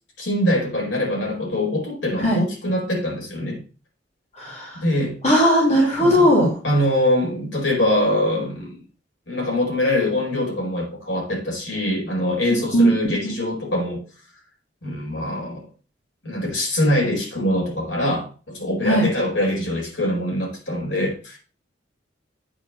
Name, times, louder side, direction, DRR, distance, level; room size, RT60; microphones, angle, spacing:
voice 1, 0.2-3.6 4.8-5.2 6.0-6.3 6.6-8.8 9.3-14.0 14.8-15.7 16.2-21.4, left 1 dB, 80° left, -3 dB, 4.9 m, -23 dB
voice 2, 4.4-4.7 5.2-6.5 12.7-12.9 13.2-13.3 18.8-19.0, equal, 40° left, -2 dB, 2.9 m, -17 dB
8.6 x 4.2 x 6.8 m, 0.37 s
head